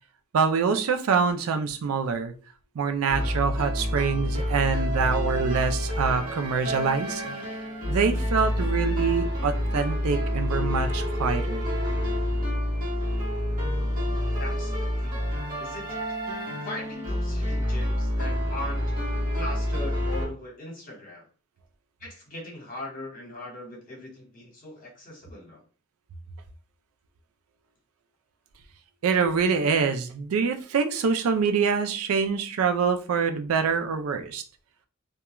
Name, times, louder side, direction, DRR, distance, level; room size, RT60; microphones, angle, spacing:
voice 1, 0.3-2.3 2.8-7.2 7.9-11.7 29.0-34.4, right 5 dB, 80° right, 7 dB, 0.4 m, -25 dB
sound 1, 3.1-20.3, equal, 40° right, 1.0 m, -28 dB
voice 2, 14.4-15.3 15.6-16.0 16.6-21.3 22.0-25.7, left 1 dB, 40° left, -1 dB, 1.1 m, -40 dB
2.3 x 2.2 x 2.9 m, 0.37 s
head